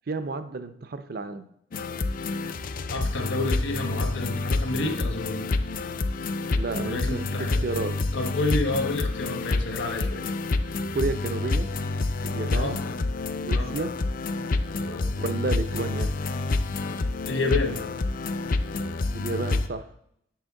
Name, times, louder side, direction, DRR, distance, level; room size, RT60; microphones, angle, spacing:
voice 1, 0.1-1.5 6.5-7.9 10.9-11.7 12.2-12.8 13.4-14.2 15.2-16.1 19.1-19.9, right 3 dB, 55° right, 10 dB, 0.5 m, -31 dB
sound 1, 1.7-19.7, left 3 dB, 45° left, 0.4 m, -28 dB
voice 2, 2.9-5.4 6.8-7.6 8.1-10.2 12.5-12.8 13.5-13.7 14.8-15.1 17.3-17.8, left 2 dB, 85° left, 4 dB, 1.3 m, -29 dB
7.9 x 6.4 x 3.7 m, 0.72 s
head